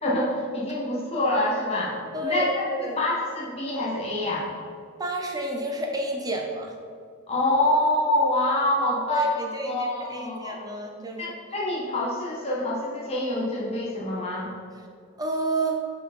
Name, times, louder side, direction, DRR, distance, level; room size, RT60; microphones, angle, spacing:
voice 1, 0.0-1.9 2.2-4.5 7.3-10.6 11.2-14.5, left 1 dB, 30° left, -5 dB, 1.5 m, -26 dB
voice 2, 2.1-3.0 5.0-6.7 9.1-11.4 15.2-15.8, right 1 dB, 15° right, 1 dB, 0.6 m, -30 dB
6.4 x 4.8 x 5.3 m, 2.3 s
head